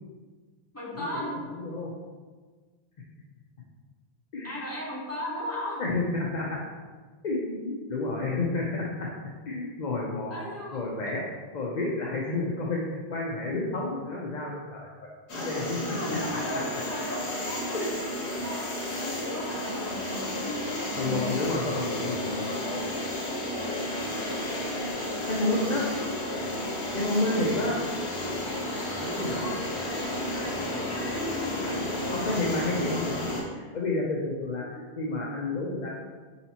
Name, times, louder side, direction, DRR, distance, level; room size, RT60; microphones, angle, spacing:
voice 1, 0.7-1.4 4.4-5.8 10.3-10.8 15.3-18.1 18.4-18.7 19.0-21.4 25.1-26.3 29.3-32.1 34.6-34.9, left 1 dB, 15° left, -6 dB, 1.0 m, -37 dB
voice 2, 1.5-1.9 4.3-4.6 5.8-6.6 7.2-9.1 9.5-10.4 10.7-11.2 11.5-14.9 15.3-15.8 17.7-17.8 21.0-22.8 25.3-25.8 26.9-27.8 29.0-29.5 32.1-33.4 33.7-35.9, left 2 dB, 50° left, -3 dB, 0.6 m, -30 dB
sound 1, 15.3-33.4, left 1 dB, 85° left, 1.2 m, -32 dB
4.2 x 3.9 x 2.9 m, 1.4 s
omnidirectional pair, 1.1 m